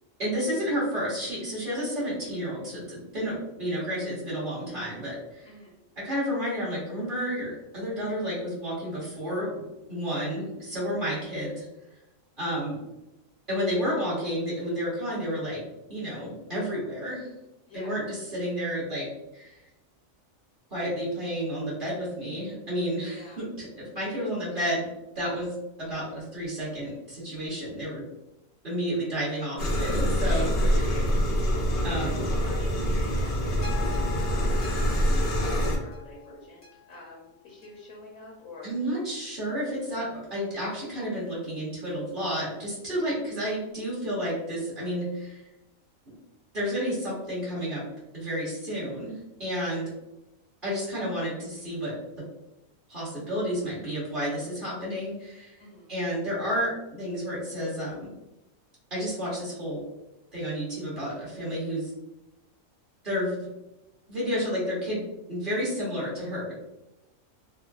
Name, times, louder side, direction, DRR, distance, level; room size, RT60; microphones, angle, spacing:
voice 1, 0.2-5.5 6.0-9.6 9.9-11.6 12.4-12.8 13.5-15.6 15.9-17.3 17.7-19.1 19.3-19.6 20.7-24.9 25.1-28.0 28.6-30.5 31.8-32.2 38.6-45.5 46.5-47.8 48.1-49.9 50.6-51.9 52.9-55.6 55.9-58.1 58.9-59.8 60.3-61.9 63.0-63.4 64.1-65.0 65.3-66.5, equal, 40° right, -8 dB, 1.3 m, -31 dB
voice 2, 5.4-5.8 17.7-18.0 23.1-23.4 30.2-31.1 32.0-38.8 55.6-55.9, left 3 dB, 75° left, -4 dB, 1.1 m, -46 dB
sound 1, 29.6-35.8, equal, 55° left, 0.6 m, -25 dB
sound 2, 33.6-37.9 38.6-38.7, left 8 dB, 15° left, 0.7 m, -44 dB
3.6 x 2.2 x 2.3 m, 0.94 s
omnidirectional pair, 1.4 m